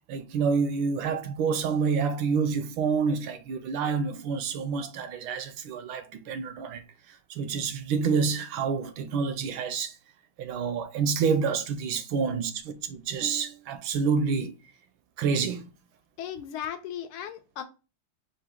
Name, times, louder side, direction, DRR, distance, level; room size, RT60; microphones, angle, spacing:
voice 1, 0.1-9.9 10.4-14.5 15.2-15.7, right 5 dB, 75° right, 1.2 m, -28 dB
voice 2, 16.2-17.6, left 10 dB, 80° left, 1.4 m, -36 dB
4.9 x 2.6 x 3.5 m
omnidirectional pair, 2.4 m